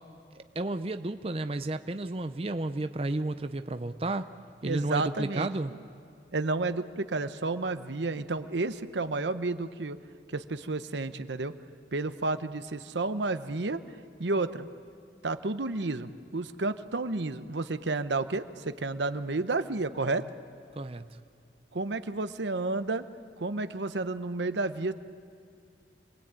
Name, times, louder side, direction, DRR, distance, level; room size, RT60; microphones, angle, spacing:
voice 1, 0.4-4.3 4.6-5.7 20.8-21.2, right 2 dB, 30° right, 9 dB, 0.6 m, -32 dB
voice 2, 4.6-5.5 6.3-10.0 10.3-11.5 11.9-13.8 14.2-14.7 15.2-20.2 21.7-23.0 23.4-24.9, right 3 dB, 85° right, 11 dB, 0.9 m, -31 dB
27.5 x 20.0 x 8.9 m, 2.2 s
head